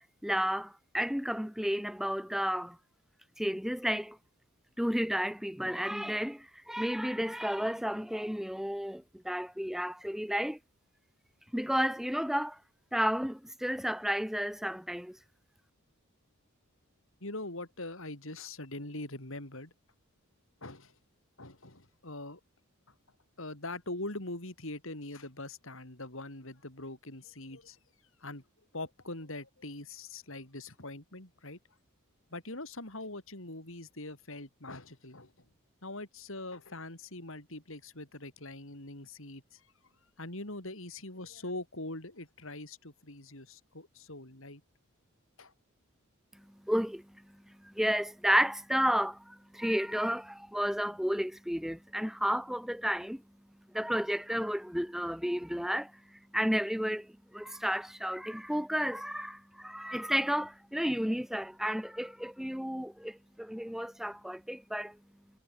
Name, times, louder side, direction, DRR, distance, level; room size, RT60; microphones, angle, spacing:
voice 1, 0.2-2.8 3.4-4.2 4.8-10.6 11.5-12.6 12.9-15.2 46.6-53.2 53.7-55.9 56.3-65.0, equal, ahead, 1.8 m, -32 dB
voice 2, 17.2-19.7 20.6-20.9 21.4-22.4 22.9-23.0 23.4-27.8 28.2-28.4 28.7-31.6 32.3-35.5 35.8-39.7 40.2-44.6 45.4-45.5, left 2 dB, 65° left, 5.9 m, -42 dB
head